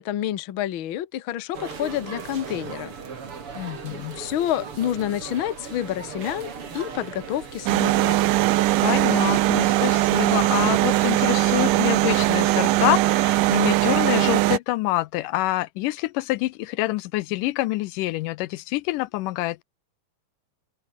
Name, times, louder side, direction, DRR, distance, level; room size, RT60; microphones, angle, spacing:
voice 1, 0.0-2.9 3.6-3.7 4.2-8.2, left 11 dB, 65° left, 1.3 m, -28 dB
sound 1, 1.5-12.6, right 6 dB, 40° right, 3.4 m, -37 dB
voice 2, 3.6-4.2 8.8-19.6, left 18 dB, 80° left, 2.1 m, -26 dB
sound 2, 7.7-14.6, right 17 dB, 80° right, 2.3 m, -20 dB
open air
omnidirectional pair, 3.9 m